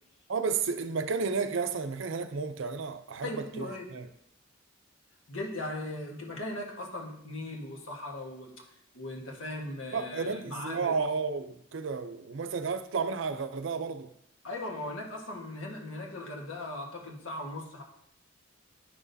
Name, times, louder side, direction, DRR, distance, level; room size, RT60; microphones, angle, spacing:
voice 1, 0.3-4.1 9.9-14.1, right 5 dB, 65° right, 0.5 m, -32 dB
voice 2, 3.2-3.9 5.3-8.5 8.9-10.9 14.4-17.8, left 1 dB, 70° left, 1.4 m, -38 dB
9.8 x 6.1 x 2.7 m
head